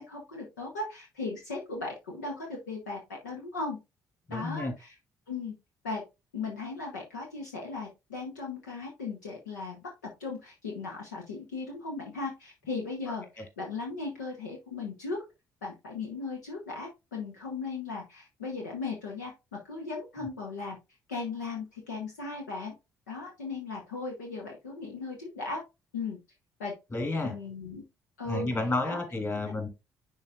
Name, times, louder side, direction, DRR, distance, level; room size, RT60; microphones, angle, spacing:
voice 1, 0.0-3.8 4.3-4.9 5.3-5.6 5.8-6.0 6.3-15.2 15.6-19.3 19.6-20.8 21.1-22.7 23.1-25.6 25.9-26.2 26.6-26.7 27.2-27.8 28.2-28.5 28.8-29.0 29.4-29.5, left 3 dB, 80° left, 1.0 m, -37 dB
voice 2, 4.3-4.7 26.9-27.3 28.3-29.7, left 2 dB, 30° left, 2.9 m, -31 dB
10.5 x 3.9 x 2.5 m
figure-of-eight pair, 45°, 9 cm